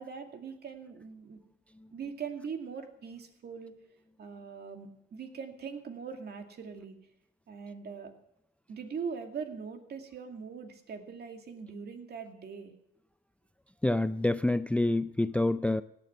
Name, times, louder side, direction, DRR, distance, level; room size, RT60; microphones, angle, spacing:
voice 1, 0.0-1.4 1.9-3.7 4.2-7.0 7.5-8.1 8.7-12.7, right 6 dB, 55° right, 6 dB, 2.3 m, -41 dB
voice 2, 13.8-15.8, left 2 dB, 5° left, 14 dB, 0.4 m, -27 dB
17.0 x 9.3 x 7.0 m, 0.80 s
cardioid pair, 90°, 20 cm